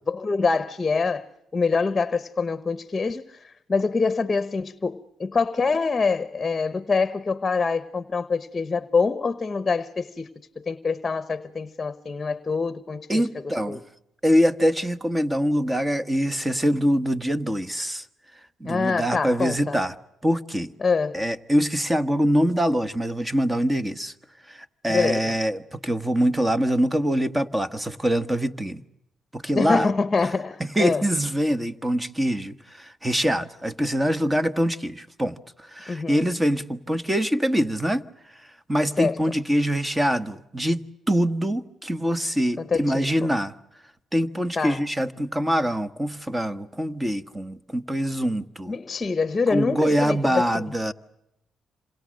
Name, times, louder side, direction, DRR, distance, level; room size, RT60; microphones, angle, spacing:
voice 1, 0.1-1.3 1.5-13.8 18.6-19.8 20.8-21.2 24.9-25.4 29.5-31.0 35.9-36.2 39.0-39.2 42.6-43.3 44.6-44.8 48.7-50.7, left 4 dB, 25° left, 1.2 m, -25 dB
voice 2, 13.1-13.8 14.2-18.1 18.6-19.9 20.2-20.7 21.1-24.1 24.5-28.8 29.3-29.9 30.6-38.0 38.7-43.5 44.1-48.7 49.5-50.9, equal, 15° right, 1.4 m, -24 dB
27.5 x 27.0 x 6.4 m
cardioid pair, 90°, 0 cm